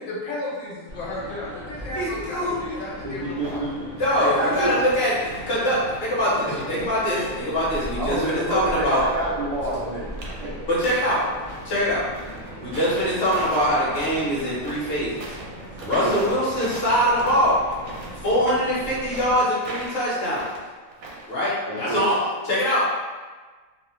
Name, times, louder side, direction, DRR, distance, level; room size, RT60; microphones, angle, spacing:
voice 1, 0.0-3.7, left 2 dB, 70° left, -6 dB, 1.1 m, -33 dB
sound 1, 0.9-19.4, equal, 20° right, 0.7 m, -39 dB
voice 2, 1.9-2.6 4.0-9.0 10.7-11.2 11.6-12.0 12.6-15.2 15.8-17.6 18.2-20.5 21.3-22.2 22.4-22.9, equal, 50° left, -8 dB, 1.0 m, -23 dB
voice 3, 3.0-3.7 4.2-4.7 6.4-6.5 8.0-10.1 10.4-10.6 16.0-16.2 21.7-22.0, right 1 dB, 60° right, -11 dB, 0.4 m, -27 dB
sound 2, 3.3-3.6 3.9-4.8 5.1-8.0 8.3-11.7 12.1-21.4, right 2 dB, 75° right, 1.0 m, -41 dB
2.7 x 2.0 x 3.0 m, 1.4 s
omnidirectional pair, 1.5 m